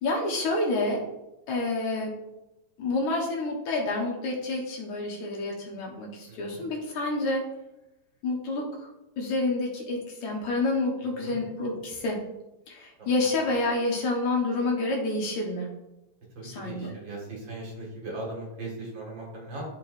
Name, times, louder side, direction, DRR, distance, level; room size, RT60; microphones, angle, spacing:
voice 1, 0.0-1.0 1.5-2.1 2.8-7.5 8.2-8.7 9.2-12.2 12.7-15.7 16.4-17.0, left 2 dB, 65° left, -2 dB, 2.3 m, -28 dB
voice 2, 6.3-6.6 11.2-11.4 13.0-13.3 16.4-19.6, right 2 dB, 40° right, -2 dB, 2.0 m, -39 dB
12.5 x 4.5 x 2.6 m, 0.94 s
omnidirectional pair, 4.1 m